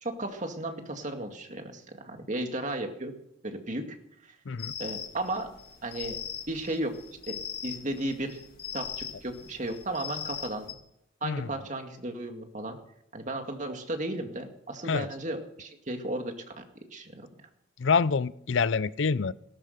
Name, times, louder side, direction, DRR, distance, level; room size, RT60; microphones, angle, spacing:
voice 1, 0.0-3.1 3.4-3.9 4.2-4.4 4.8-5.5 5.8-6.2 6.5-6.9 7.3-8.4 8.7-10.7 11.2-12.8 13.1-16.6 16.9-17.3, right 1 dB, 40° right, 5 dB, 2.1 m, -34 dB
sound 1, 4.6-10.7, left 8 dB, 55° left, 2.0 m, -39 dB
voice 2, 17.8-19.3, left 5 dB, 75° left, 19 dB, 0.5 m, -26 dB
17.5 x 12.5 x 6.6 m, 0.77 s
head